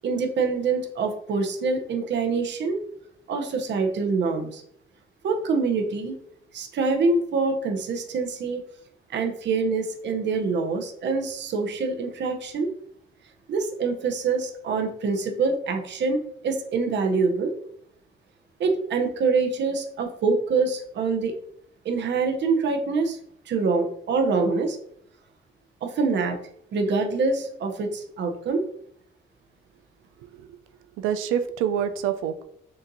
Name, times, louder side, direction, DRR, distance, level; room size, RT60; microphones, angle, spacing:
voice 1, 0.0-2.8 3.3-4.6 5.2-6.2 6.5-8.6 9.1-12.7 13.5-17.5 18.6-21.3 21.8-23.2 23.5-24.8 25.8-26.4 26.7-28.6, right 4 dB, 65° right, 4 dB, 0.8 m, -25 dB
voice 2, 30.2-30.6 31.0-32.4, right 9 dB, 90° right, 10 dB, 0.4 m, -27 dB
6.7 x 2.5 x 2.7 m, 0.69 s
cardioid pair, 90°, 20 cm